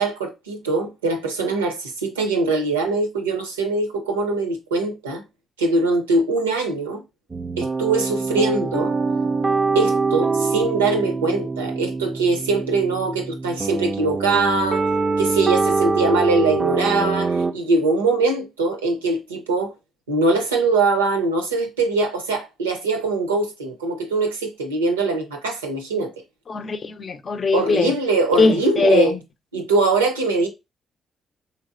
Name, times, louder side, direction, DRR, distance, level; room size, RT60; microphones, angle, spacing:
voice 1, 0.0-5.2 5.6-7.0 7.6-8.9 9.7-14.9 15.2-19.7 20.1-26.1 27.5-29.1 29.5-30.5, right 3 dB, 90° right, 0.5 m, -22 dB
sound 1, 7.3-17.5, right 4 dB, 35° right, 0.3 m, -24 dB
voice 2, 26.5-27.9 28.3-29.2, left 4 dB, 50° left, 0.5 m, -20 dB
3.3 x 2.9 x 2.4 m
hypercardioid pair, 40°, 0 cm